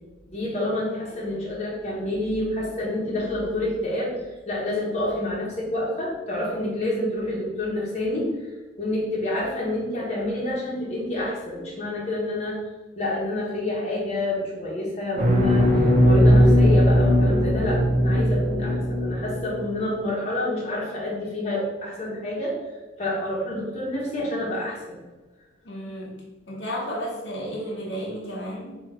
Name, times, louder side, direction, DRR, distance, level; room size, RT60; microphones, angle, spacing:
voice 1, 0.2-8.3 8.8-12.6 13.0-15.7 16.0-22.6 23.0-25.0, left 1 dB, 35° left, -5 dB, 1.2 m, -28 dB
sound 1, 15.2-19.7, equal, 40° right, 0.7 m, -19 dB
voice 2, 25.6-26.2 26.5-28.7, equal, 65° left, -4 dB, 1.1 m, -32 dB
3.8 x 3.2 x 4.2 m, 1.2 s
head